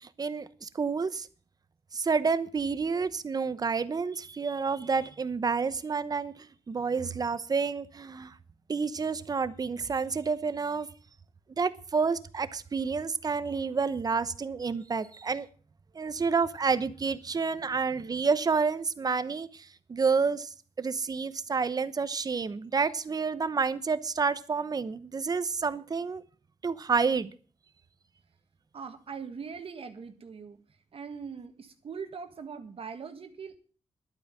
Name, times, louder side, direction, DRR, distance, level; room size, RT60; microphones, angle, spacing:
voice 1, 0.0-1.3 1.9-8.4 8.7-10.9 11.6-15.5 15.9-26.2 26.6-27.3, right 5 dB, 35° right, 14 dB, 0.9 m, -29 dB
voice 2, 28.7-30.6 30.9-33.6, right 6 dB, 55° right, 8 dB, 1.7 m, -41 dB
11.5 x 9.0 x 7.4 m, 0.41 s
wide cardioid pair, 120°, 12 cm